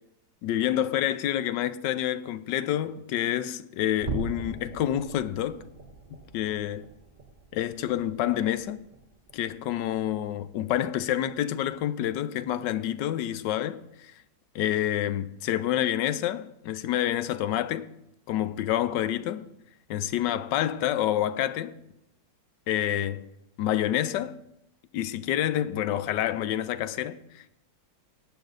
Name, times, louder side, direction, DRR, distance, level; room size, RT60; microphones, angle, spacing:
voice 1, 0.4-5.6 6.1-6.9 7.5-8.8 9.3-14.1 14.5-17.9 18.3-19.5 19.9-21.8 22.7-23.3 23.6-24.4 24.9-27.5, left 12 dB, 75° left, 1.2 m, -28 dB
sound 1, 4.0-10.6 11.0-11.3 11.7-11.8 12.4-12.5, right 3 dB, 30° right, 0.9 m, -42 dB
17.5 x 7.0 x 4.0 m
omnidirectional pair, 2.0 m